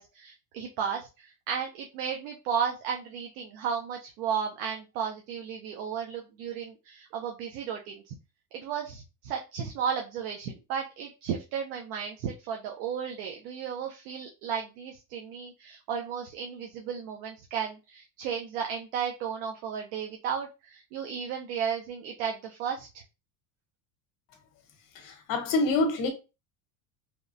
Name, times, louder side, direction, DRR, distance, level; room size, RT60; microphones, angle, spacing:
voice 1, 0.0-8.2 8.5-23.0, right 7 dB, 75° right, 0.6 m, -34 dB
voice 2, 24.9-26.1, left 3 dB, 50° left, 0.8 m, -26 dB
2.9 x 2.1 x 2.5 m
supercardioid pair, 135°, 44 cm